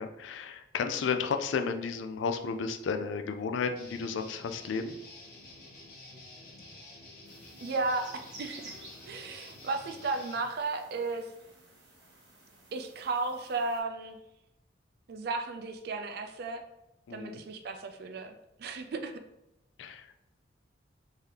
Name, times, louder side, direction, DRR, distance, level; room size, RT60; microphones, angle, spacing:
voice 1, 0.0-4.9 17.1-17.4 19.8-20.2, left 5 dB, 80° left, 7 dB, 0.4 m, -33 dB
Guitar, 3.7-10.4, left 2 dB, 50° left, 1.0 m, -50 dB
sound 1, 7.3-13.8, right 1 dB, 75° right, 1.2 m, -54 dB
voice 2, 7.6-8.8 9.1-11.3 12.7-14.2 15.1-16.6 17.1-18.3 18.6-19.1, right 3 dB, 55° right, 7 dB, 0.4 m, -34 dB
3.7 x 2.7 x 3.2 m, 0.88 s
head